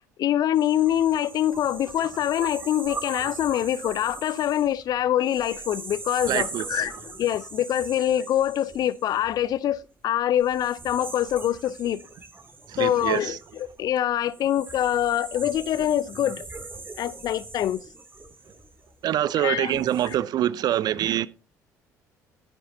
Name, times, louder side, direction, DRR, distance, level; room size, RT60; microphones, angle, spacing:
voice 1, 0.2-12.0 12.8-16.5 17.0-17.8 19.4-20.2, left 11 dB, 45° left, 0.5 m, -25 dB
sound 1, 0.5-9.8 10.4-19.1 19.6-20.1, right 3 dB, 25° right, 2.0 m, -41 dB
voice 2, 6.3-6.9 12.7-13.4 19.0-21.3, right 12 dB, 50° right, 0.6 m, -25 dB
13.5 x 9.6 x 2.7 m
figure-of-eight pair, 55°, 9 cm